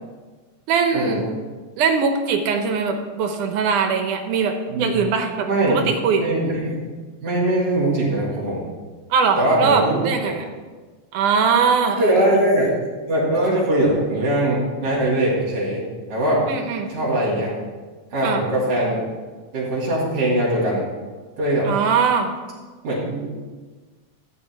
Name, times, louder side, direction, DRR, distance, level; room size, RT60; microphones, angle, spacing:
voice 1, 0.7-1.2 1.8-6.3 9.1-10.5 11.1-12.3 16.5-16.9 18.2-18.4 21.6-22.3, right 5 dB, 85° right, 5 dB, 2.6 m, -21 dB
voice 2, 5.5-5.8 6.2-6.8 7.2-8.7 9.4-10.3 12.0-12.7 13.1-15.8 16.1-16.4 16.9-17.5 18.1-19.0 19.5-20.9 21.4-21.7 22.8-23.3, right 1 dB, 65° right, -6 dB, 4.1 m, -21 dB
13.0 x 9.8 x 4.8 m, 1.4 s
omnidirectional pair, 3.5 m